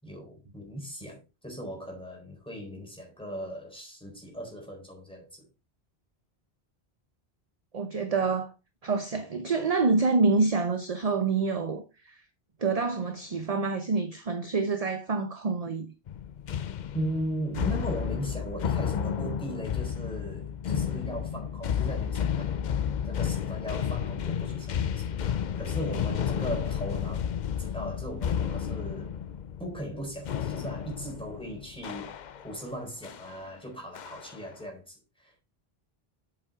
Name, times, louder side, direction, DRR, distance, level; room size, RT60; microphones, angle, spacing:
voice 1, 0.0-5.5 16.9-22.6 23.0-29.2 29.6-35.4, equal, 5° left, 4.2 m, -38 dB
voice 2, 7.7-8.5 8.8-12.2 12.6-15.9, right 4 dB, 40° right, 0.9 m, -27 dB
sound 1, 16.1-32.6 33.0-33.3 34.0-34.5, left 8 dB, 55° left, 0.6 m, -32 dB
8.4 x 7.4 x 3.6 m
omnidirectional pair, 1.1 m